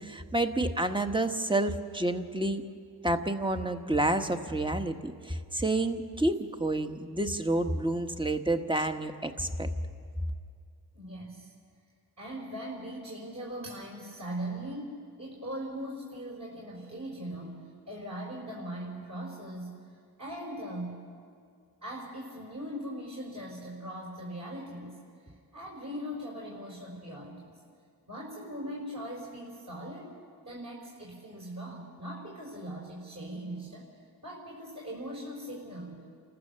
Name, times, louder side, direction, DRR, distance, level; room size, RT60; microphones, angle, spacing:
voice 1, 0.0-2.6 3.0-9.7, right 1 dB, 10° right, 6 dB, 1.4 m, -29 dB
voice 2, 10.9-11.5 12.2-19.8 20.2-20.9 21.8-25.0 25.2-27.6 28.1-30.1 30.4-33.9 34.2-36.1, right 1 dB, 45° right, -3 dB, 4.4 m, -40 dB
29.0 x 14.5 x 6.8 m, 2.2 s
cardioid pair, 60°, 40 cm